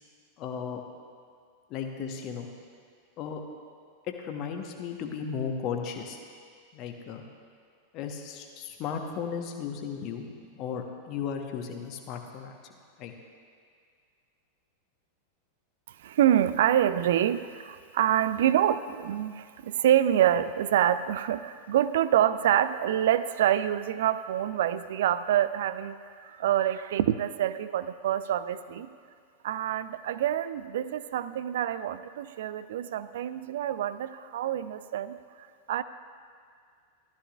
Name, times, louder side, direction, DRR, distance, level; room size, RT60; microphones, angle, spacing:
voice 1, 0.4-0.8 1.7-2.5 3.2-3.4 4.2-6.2 6.7-7.2 7.9-12.7 13.0-13.1, left 6 dB, 40° left, 3 dB, 1.1 m, -35 dB
voice 2, 15.9-28.9 29.4-35.8, right 11 dB, 55° right, 14 dB, 0.4 m, -26 dB
15.5 x 13.0 x 2.4 m, 2.2 s
figure-of-eight pair, 90°, 0 cm